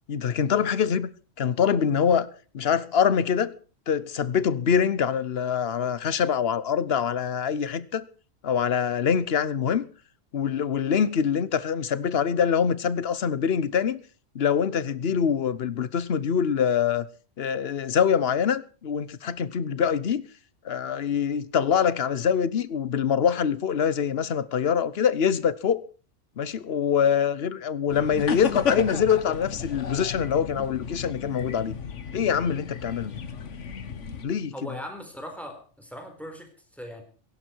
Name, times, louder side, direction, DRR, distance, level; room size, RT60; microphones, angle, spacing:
voice 1, 0.1-1.1 1.4-2.3 2.5-3.5 3.9-8.0 8.4-9.8 10.3-14.0 14.3-17.1 17.4-20.2 20.6-25.8 26.4-31.8 32.1-33.1 34.2-34.5, left 7 dB, 60° left, 1.1 m, -24 dB
sound 1, 27.9-34.3, left 6 dB, 75° left, 1.6 m, -33 dB
voice 2, 34.5-37.0, equal, ahead, 4.2 m, -39 dB
17.0 x 16.5 x 4.6 m
omnidirectional pair, 1.2 m